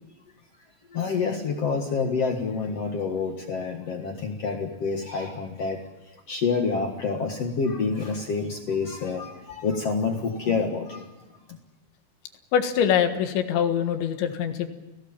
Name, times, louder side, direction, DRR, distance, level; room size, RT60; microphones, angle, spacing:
voice 1, 0.9-5.8 6.3-11.1 11.5-11.6, left 5 dB, 55° left, 3 dB, 1.8 m, -28 dB
voice 2, 12.5-14.7, left 8 dB, 90° left, 7 dB, 3.9 m, -23 dB
29.5 x 17.0 x 7.4 m, 1.1 s
omnidirectional pair, 5.1 m